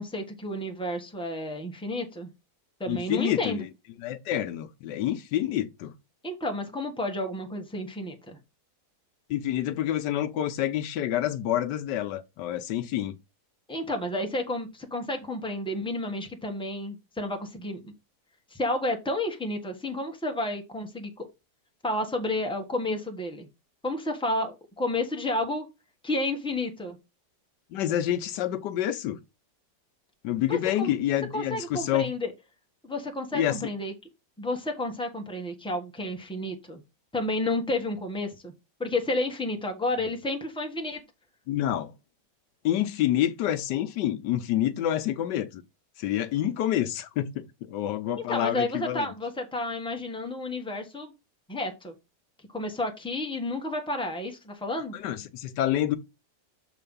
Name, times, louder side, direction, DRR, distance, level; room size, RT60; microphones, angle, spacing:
voice 1, 0.0-2.3 2.8-3.6 6.2-8.4 13.7-17.9 18.5-21.3 21.8-23.5 23.8-25.6 26.0-27.0 30.5-30.9 31.3-32.3 32.8-33.9 34.4-36.8 37.1-38.5 38.8-41.0 48.2-51.1 51.5-51.9 52.5-54.9, left 1 dB, 5° left, 1.3 m, -31 dB
voice 2, 2.9-3.7 4.0-5.9 9.3-13.2 27.7-29.2 30.2-32.1 33.3-33.6 41.5-41.9 42.6-45.6 46.0-49.1 54.9-56.0, left 12 dB, 85° left, 1.3 m, -28 dB
6.8 x 3.3 x 5.4 m
omnidirectional pair, 1.8 m